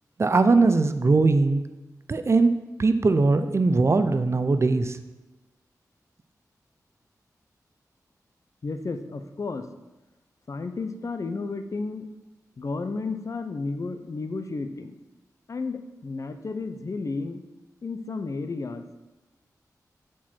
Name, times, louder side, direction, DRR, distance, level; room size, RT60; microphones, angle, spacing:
voice 1, 0.2-1.6 2.1-2.5 2.8-5.0, right 3 dB, 45° right, 10 dB, 0.6 m, -20 dB
voice 2, 8.6-9.7 10.5-12.1 12.6-14.9 15.5-17.4 17.8-18.9, left 3 dB, 55° left, 9 dB, 0.7 m, -32 dB
7.3 x 4.7 x 5.9 m, 1.1 s
wide cardioid pair, 75°, 7 cm